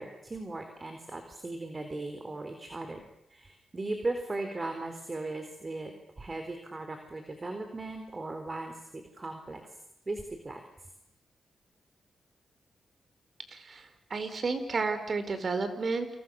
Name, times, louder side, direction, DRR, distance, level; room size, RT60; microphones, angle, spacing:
voice 1, 0.0-3.0 3.3-5.9 6.2-9.6 10.1-10.6, right 2 dB, 35° right, 6 dB, 4.2 m, -37 dB
voice 2, 13.5-16.1, right 4 dB, 55° right, 9 dB, 4.8 m, -32 dB
29.5 x 28.0 x 6.7 m, 0.79 s
cardioid pair, 65°, 0 cm